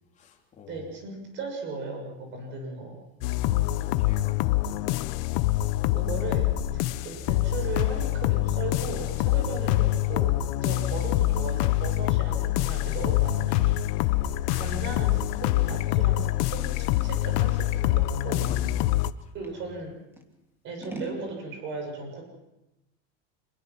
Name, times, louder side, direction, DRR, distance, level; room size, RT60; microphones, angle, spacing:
voice 1, 0.1-1.0 3.6-5.0 18.4-18.9 19.2-19.7, left 5 dB, 20° left, 0 dB, 3.3 m, -44 dB
voice 2, 0.7-3.0 5.9-13.8 14.5-18.5 19.3-20.0 20.6-22.3, right 3 dB, 35° right, 4 dB, 6.9 m, -37 dB
sound 1, 3.2-19.1, left 16 dB, 50° left, 0.8 m, -25 dB
Scissors, 13.4-19.6 20.1-21.3, right 1 dB, 5° right, 1.7 m, -46 dB
26.0 x 21.5 x 6.1 m, 0.94 s
supercardioid pair, 165°, 34 cm